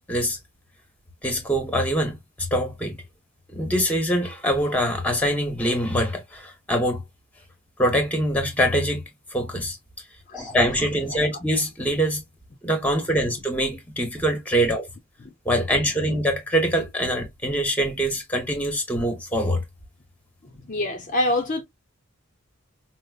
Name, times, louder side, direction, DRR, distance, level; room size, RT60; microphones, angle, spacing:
voice 1, 1.2-3.0 3.5-7.0 7.8-9.0 9.3-9.8 10.3-12.2 12.6-14.9 15.4-19.6, equal, 5° left, 1.1 m, -24 dB
voice 2, 20.7-21.6, left 1 dB, 40° left, 0.7 m, -25 dB
5.2 x 2.1 x 2.4 m
head